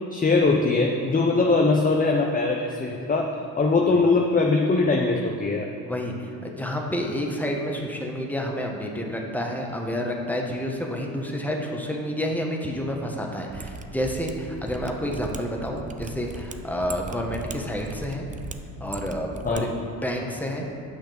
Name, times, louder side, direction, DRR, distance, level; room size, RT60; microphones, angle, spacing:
voice 1, 0.1-5.7 19.4-19.7, left 3 dB, 20° left, 1 dB, 0.8 m, -21 dB
voice 2, 5.8-18.3 18.8-20.7, equal, 5° left, 0 dB, 1.5 m, -29 dB
Mechanisms, 13.5-19.6 19.9-20.0, right 3 dB, 20° right, 0.6 m, -38 dB
9.4 x 5.7 x 5.3 m, 2.7 s
hypercardioid pair, 65°, 42 cm